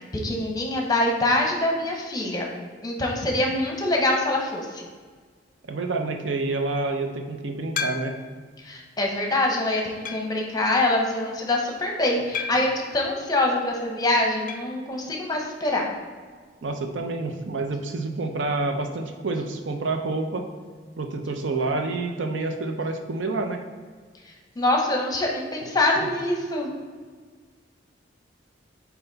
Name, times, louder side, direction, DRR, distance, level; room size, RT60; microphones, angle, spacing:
voice 1, 0.2-2.5 2.8-4.8 8.6-15.9 24.6-26.7, left 1 dB, 20° left, 0 dB, 0.9 m, -24 dB
voice 2, 5.7-8.1 16.6-20.4 21.0-23.6 26.0-26.1, right 3 dB, 85° right, 5 dB, 0.6 m, -28 dB
sound 1, 7.8-8.4 9.1-9.2 10.0-10.4 12.3-12.8 14.5-14.8 15.0-15.1 15.4-15.5 17.5-17.6, left 6 dB, 45° left, 0.3 m, -33 dB
5.8 x 4.5 x 4.0 m, 1.5 s
head